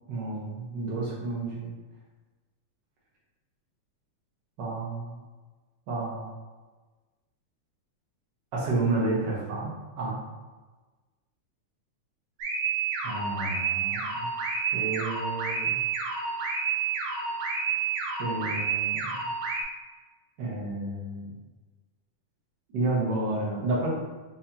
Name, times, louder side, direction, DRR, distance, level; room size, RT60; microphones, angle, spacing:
voice 1, 0.1-1.7 4.6-5.2 5.9-6.3 8.5-10.1 13.0-14.3 14.7-15.8 18.2-19.3 20.4-21.3 22.7-23.9, right 2 dB, 90° right, -5 dB, 0.9 m, -31 dB
sound 1, 12.4-19.6, right 5 dB, 70° right, 1.8 m, -29 dB
6.3 x 2.9 x 2.8 m, 1.3 s
omnidirectional pair, 3.6 m